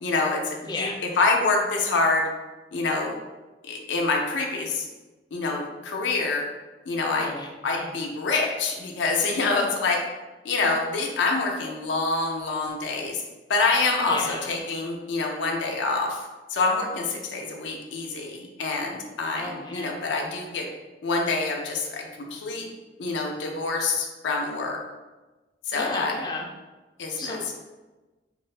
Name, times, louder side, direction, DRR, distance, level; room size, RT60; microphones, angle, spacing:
voice 1, 0.0-0.9 1.2-2.3 2.7-3.2 3.6-4.9 5.3-6.5 6.9-7.3 7.6-10.0 10.4-13.2 13.5-20.7 21.0-22.7 23.0-24.8 25.7-26.1 27.0-27.4, left 3 dB, 85° left, 1 dB, 0.4 m, -26 dB
voice 2, 0.6-1.0 7.0-7.9 14.1-14.5 19.3-19.9 25.7-26.5 27.2-27.5, left 2 dB, 25° left, 1 dB, 0.3 m, -34 dB
2.6 x 2.4 x 3.2 m, 1.2 s
head